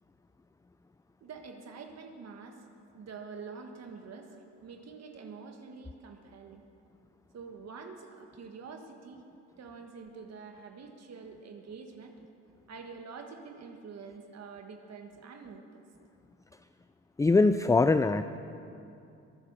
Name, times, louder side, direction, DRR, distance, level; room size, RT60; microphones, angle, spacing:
voice 1, 1.2-2.7 2.9-6.6 7.3-9.2 9.6-12.1 12.7-15.8, right 5 dB, 60° right, 4 dB, 1.6 m, -46 dB
voice 2, 17.2-18.4, left 3 dB, 10° left, 11 dB, 0.4 m, -23 dB
22.0 x 9.2 x 6.8 m, 2.6 s
cardioid pair, 90°, 30 cm